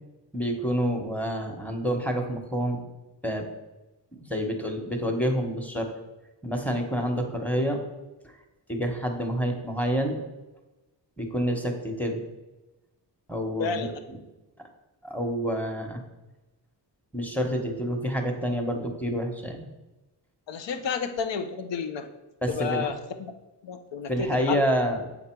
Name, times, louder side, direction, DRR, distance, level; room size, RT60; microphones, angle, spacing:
voice 1, 0.3-2.8 3.2-3.5 4.1-5.9 6.4-7.8 8.7-10.2 11.2-12.2 13.3-14.2 15.0-16.0 17.1-19.7 22.4-22.9 24.1-25.1, equal, 5° left, 3 dB, 1.2 m, -28 dB
voice 2, 13.6-14.0 20.5-22.1 22.5-23.3 23.6-24.6, left 6 dB, 75° left, 7 dB, 0.8 m, -31 dB
7.1 x 3.9 x 4.6 m, 1.1 s
cardioid pair, 60°, 44 cm